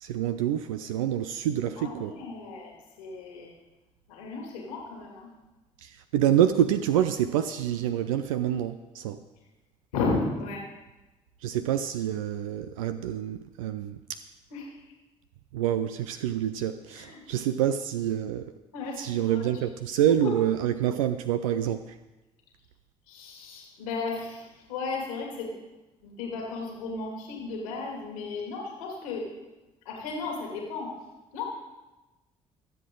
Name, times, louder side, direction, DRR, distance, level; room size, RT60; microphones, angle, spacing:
voice 1, 0.0-2.1 5.8-9.2 11.4-14.0 15.5-18.5 19.0-21.9, right 10 dB, 85° right, 9 dB, 0.4 m, -27 dB
voice 2, 1.8-3.5 4.1-5.3 9.9-10.7 14.5-14.8 16.9-17.2 18.7-19.4 20.2-20.3 23.1-25.5 26.0-29.3 29.8-30.9 31.3-31.4, left 3 dB, 85° left, -1 dB, 2.6 m, -34 dB
23.5 x 7.8 x 3.8 m, 1.1 s
hypercardioid pair, 45°, 17 cm